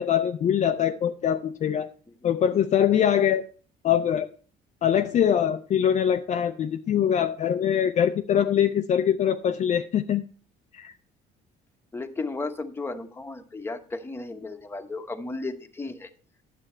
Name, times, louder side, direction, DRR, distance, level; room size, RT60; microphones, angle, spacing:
voice 1, 0.0-1.9 2.2-3.4 3.8-4.3 4.8-10.2 10.7-10.9, left 9 dB, 45° left, 7 dB, 0.5 m, -23 dB
voice 2, 11.9-16.1, left 3 dB, 15° left, 6 dB, 1.0 m, -34 dB
9.9 x 7.5 x 4.4 m, 0.41 s
cardioid pair, 110°, 17 cm